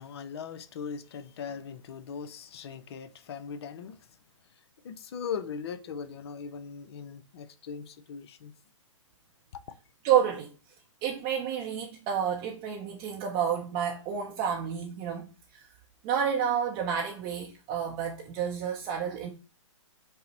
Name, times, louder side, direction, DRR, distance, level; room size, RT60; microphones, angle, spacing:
voice 1, 0.0-4.0 4.8-8.5 9.5-9.6, left 6 dB, 50° left, 0.5 m, -39 dB
voice 2, 10.0-10.5 11.0-15.3 15.5-15.7 16.0-19.3, right 8 dB, 25° right, 0.5 m, -29 dB
5.3 x 2.0 x 4.0 m
hypercardioid pair, 125°, 17 cm